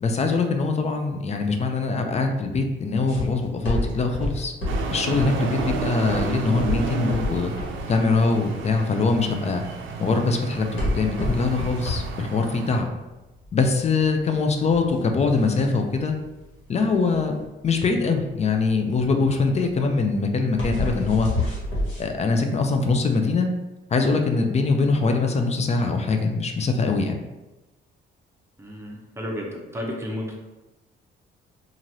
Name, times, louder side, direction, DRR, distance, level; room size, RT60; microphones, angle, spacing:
voice 1, 0.0-4.5 4.9-7.5 7.9-9.6 10.0-12.9 13.5-16.1 16.7-17.4 17.6-21.3 22.0-23.5 23.9-27.1, left 4 dB, 35° left, 5 dB, 0.4 m, -23 dB
sound 1, 3.1-22.0, left 1 dB, 75° left, 1.3 m, -30 dB
sound 2, 4.7-12.8, right 5 dB, 80° right, 0.4 m, -32 dB
voice 2, 28.6-30.3, equal, 15° right, -1 dB, 0.7 m, -32 dB
3.0 x 2.5 x 2.7 m, 1.1 s
cardioid pair, 90°, 20 cm